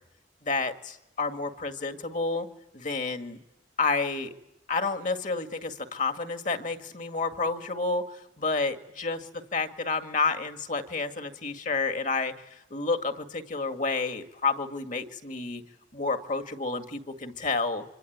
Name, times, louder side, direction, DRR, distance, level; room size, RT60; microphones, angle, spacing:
voice 1, 0.4-2.5 2.7-3.4 3.8-4.3 4.7-15.6 15.9-17.8, left 3 dB, 45° left, 7 dB, 1.9 m, -30 dB
26.0 x 24.5 x 9.4 m, 0.85 s
head